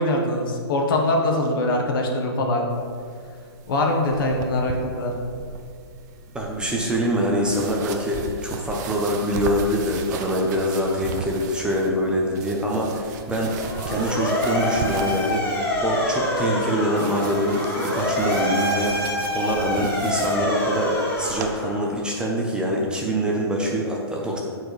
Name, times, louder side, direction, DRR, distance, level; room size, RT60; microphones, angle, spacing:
voice 1, 0.0-2.6 3.7-5.1, left 1 dB, 55° left, 1 dB, 1.5 m, -22 dB
Clothing Rubbing Foley Sound, 2.7-21.5, right 6 dB, 45° right, 0.7 m, -37 dB
voice 2, 6.3-24.4, equal, 5° right, -2 dB, 0.9 m, -25 dB
Motor vehicle (road) / Siren, 13.5-22.1, left 1 dB, 15° left, 2.0 m, -26 dB
13.5 x 4.7 x 3.4 m, 2.2 s
hypercardioid pair, 135°, 14 cm